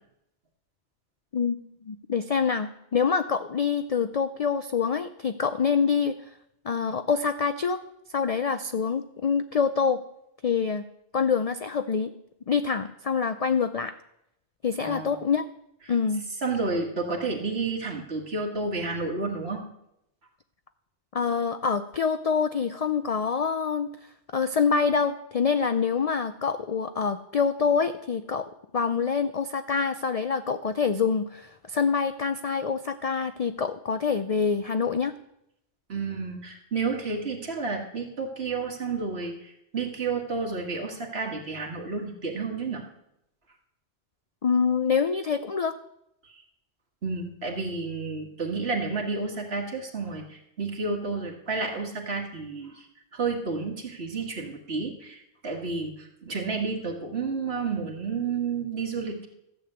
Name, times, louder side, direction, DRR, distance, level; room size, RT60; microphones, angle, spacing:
voice 1, 1.9-6.2 6.6-7.8 8.1-10.0 10.4-10.8 11.1-12.1 12.5-13.9 14.6-15.4 15.9-16.2 21.1-23.9 24.3-35.1 44.4-45.7, left 6 dB, 50° left, 10 dB, 0.4 m, -26 dB
voice 2, 14.8-15.2 15.8-15.9 16.4-19.6 35.9-42.8 46.2-46.4 47.0-52.9 53.1-59.3, right 4 dB, 65° right, 1 dB, 2.0 m, -31 dB
14.0 x 6.9 x 7.9 m, 0.81 s
omnidirectional pair, 1.2 m